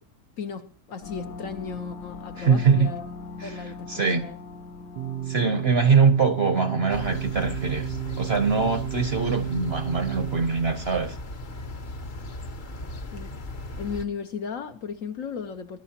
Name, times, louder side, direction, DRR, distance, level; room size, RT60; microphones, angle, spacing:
voice 1, 0.4-3.1 3.4-4.4 13.1-13.3 13.8-15.8, left 6 dB, 60° left, 1.0 m, -35 dB
sound 1, 1.0-10.2, left 3 dB, 85° left, 2.2 m, -43 dB
voice 2, 2.4-2.9 3.4-3.5 3.9-4.2 5.3-11.2, right 5 dB, 45° right, 0.9 m, -23 dB
sound 2, 5.0-10.4, right 12 dB, 85° right, 1.5 m, -32 dB
sound 3, 6.9-14.0, left 1 dB, 40° left, 0.8 m, -37 dB
20.0 x 12.0 x 2.8 m
omnidirectional pair, 1.8 m